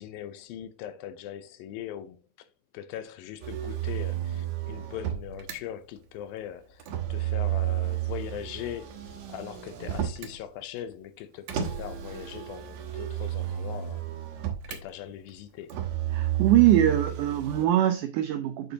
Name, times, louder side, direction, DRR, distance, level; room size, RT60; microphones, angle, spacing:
voice 1, 0.0-2.5 2.7-9.0 9.3-14.0 14.7-15.8, left 10 dB, 80° left, 2.4 m, -40 dB
Motor vehicle (road), 3.4-5.6 6.8-10.4 11.5-14.8 15.7-17.6, right 12 dB, 65° right, 2.1 m, -32 dB
voice 2, 16.1-18.7, right 12 dB, 85° right, 1.8 m, -23 dB
7.5 x 6.8 x 2.8 m
omnidirectional pair, 4.2 m